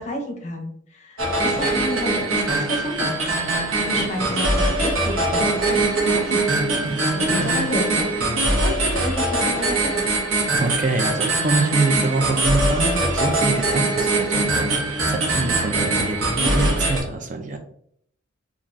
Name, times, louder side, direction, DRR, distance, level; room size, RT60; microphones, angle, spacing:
voice 1, 0.0-3.3 3.9-6.4 7.2-8.1 8.6-10.0 16.4-16.7, left 1 dB, 35° left, 3 dB, 0.6 m, -30 dB
sound 1, 1.2-17.0, right 2 dB, 90° right, 0.9 m, -22 dB
voice 2, 10.5-14.7 15.1-17.6, right 3 dB, 40° right, 5 dB, 0.5 m, -25 dB
3.2 x 2.4 x 2.5 m, 0.66 s
head